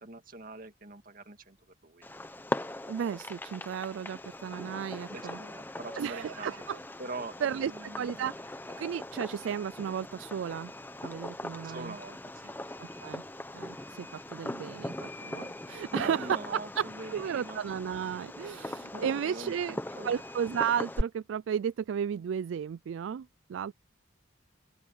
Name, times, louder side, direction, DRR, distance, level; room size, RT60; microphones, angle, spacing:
voice 1, 0.0-2.1 5.1-6.5 7.0-8.3 11.6-12.5 15.9-17.6 18.9-20.1, right 2 dB, 45° right, 2.1 m, -43 dB
Fireworks, 2.0-21.0, left 1 dB, 10° left, 0.9 m, -40 dB
voice 2, 2.9-5.4 6.0-6.8 7.4-8.3 8.8-10.7 11.0-11.9 12.8-13.2 13.5-19.8 20.0-23.7, right 8 dB, 70° right, 0.3 m, -34 dB
open air
head